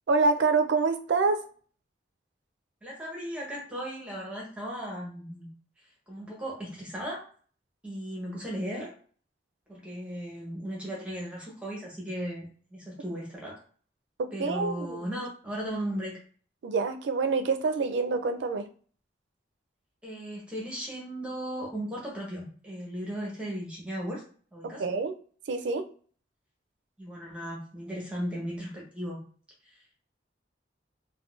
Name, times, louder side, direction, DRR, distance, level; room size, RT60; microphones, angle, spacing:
voice 1, 0.1-1.4 14.4-15.1 16.6-18.7 24.8-25.1 25.5-25.9, right 4 dB, 80° right, 7 dB, 0.4 m, -26 dB
voice 2, 2.8-5.5 6.1-7.2 7.8-8.9 9.7-12.4 12.7-13.6 14.3-16.2 20.0-24.2 24.5-24.8 27.0-29.2 29.7-30.0, equal, 5° right, -4 dB, 0.8 m, -36 dB
3.6 x 2.2 x 2.4 m, 0.43 s
head